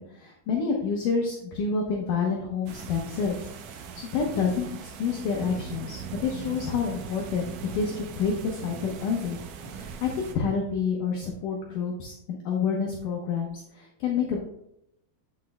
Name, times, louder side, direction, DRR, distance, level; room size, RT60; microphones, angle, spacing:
voice 1, 0.0-7.5 7.7-9.4 9.7-14.4, left 5 dB, 70° left, -1 dB, 2.0 m, -28 dB
sound 1, 2.7-10.4, right 6 dB, 85° right, 1.9 m, -40 dB
8.2 x 7.4 x 2.2 m, 0.81 s
omnidirectional pair, 4.6 m